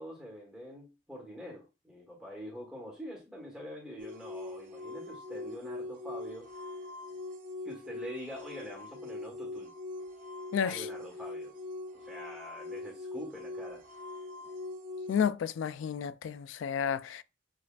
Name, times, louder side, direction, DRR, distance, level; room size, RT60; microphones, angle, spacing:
voice 1, 0.0-6.5 7.6-9.7 10.6-11.5 11.9-13.8, equal, 5° right, 1.2 m, -45 dB
sound 1, 4.0-15.2, left 2 dB, 40° right, 0.6 m, -42 dB
voice 2, 10.5-10.9 15.1-17.2, left 7 dB, 75° left, 0.3 m, -31 dB
7.1 x 2.4 x 2.4 m
head